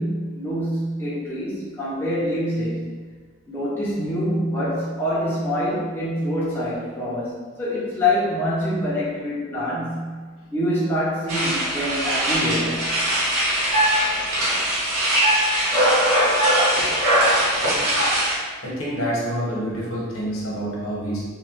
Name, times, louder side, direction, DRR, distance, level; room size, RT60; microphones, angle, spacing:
voice 1, 0.0-2.9 3.5-10.1 10.5-12.8 16.8-16.9, left 1 dB, 10° left, -8 dB, 0.5 m, -25 dB
sound 1, 11.3-18.4, right 1 dB, 85° right, 0.7 m, -21 dB
voice 2, 18.6-21.2, equal, 75° left, -5 dB, 0.9 m, -27 dB
3.0 x 2.2 x 3.0 m, 1.5 s
head